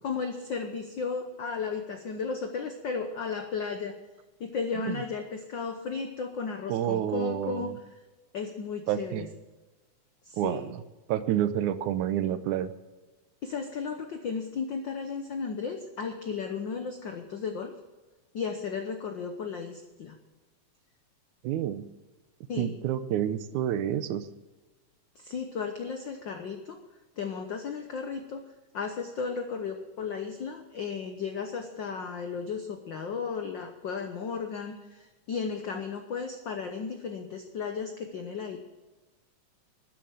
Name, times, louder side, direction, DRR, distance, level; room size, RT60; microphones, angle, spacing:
voice 1, 0.0-3.9 4.4-7.7 8.3-9.3 10.2-10.7 13.4-17.7 18.3-20.2 22.5-22.7 25.1-26.8 27.2-28.4 28.7-38.6, left 5 dB, 80° left, 6 dB, 1.0 m, -34 dB
voice 2, 6.7-7.8 8.9-9.3 10.4-10.8 11.1-12.7 21.4-21.9 22.6-24.3, right 11 dB, 80° right, 13 dB, 2.2 m, -29 dB
12.5 x 10.5 x 7.5 m, 1.2 s
omnidirectional pair, 3.5 m